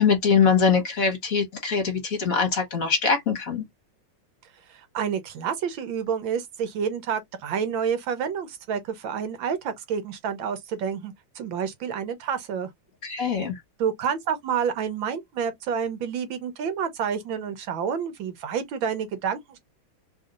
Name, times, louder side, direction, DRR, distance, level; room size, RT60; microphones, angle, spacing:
voice 1, 0.0-3.6 13.0-13.5, left 5 dB, 45° left, 1.6 m, -22 dB
voice 2, 4.7-12.7 13.8-19.6, right 7 dB, 75° right, 1.5 m, -29 dB
3.6 x 2.6 x 3.8 m
omnidirectional pair, 2.3 m